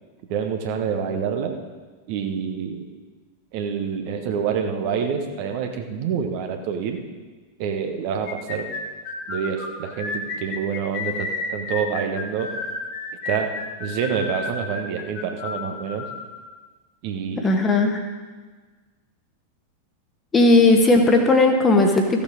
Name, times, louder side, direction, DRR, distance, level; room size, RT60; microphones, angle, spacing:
voice 1, 0.3-1.6 2.1-2.9 3.5-7.0 7.6-8.7 9.3-12.5 13.2-16.1 17.0-17.5, right 7 dB, 45° right, 4 dB, 1.2 m, -27 dB
sound 1, 8.3-16.3, left 3 dB, 35° left, 1.6 m, -31 dB
voice 2, 17.4-18.0 20.3-22.2, left 2 dB, 20° left, 3 dB, 1.6 m, -17 dB
14.5 x 7.2 x 5.1 m, 1.4 s
figure-of-eight pair, 90°, 0 cm